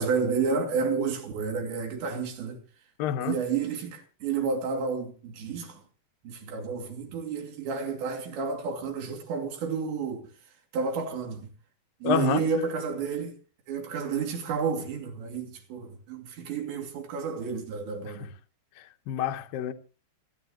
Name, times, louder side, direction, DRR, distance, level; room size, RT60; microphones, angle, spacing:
voice 1, 0.0-2.6 3.2-5.8 6.2-10.3 10.7-11.5 12.0-13.3 13.7-18.3, right 5 dB, 75° right, 4.8 m, -30 dB
voice 2, 3.0-3.4 12.0-12.4 18.1-18.3 18.8-19.7, left 9 dB, 70° left, 2.3 m, -29 dB
28.0 x 9.9 x 3.0 m
omnidirectional pair, 5.2 m